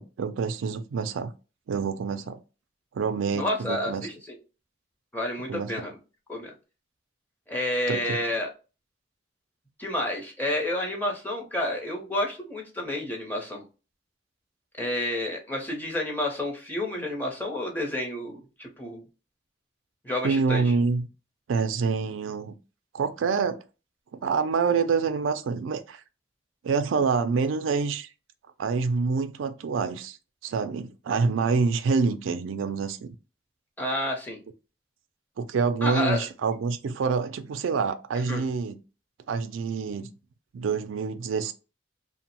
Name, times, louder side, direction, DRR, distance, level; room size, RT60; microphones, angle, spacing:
voice 1, 0.0-1.3 1.7-2.4 2.9-4.1 5.5-5.8 7.9-8.2 20.2-21.1 21.5-22.5 22.9-23.6 24.2-26.0 26.6-28.1 28.6-30.2 30.4-33.2 35.4-38.8 39.3-40.1 40.5-41.5, right 5 dB, 85° right, 0.4 m, -26 dB
voice 2, 3.3-4.2 5.1-5.9 6.3-6.5 7.5-8.5 9.8-13.6 14.8-19.0 20.0-20.7 33.8-34.4 35.8-36.3 38.3-38.5, left 1 dB, 10° left, 0.7 m, -30 dB
2.9 x 2.0 x 2.8 m
head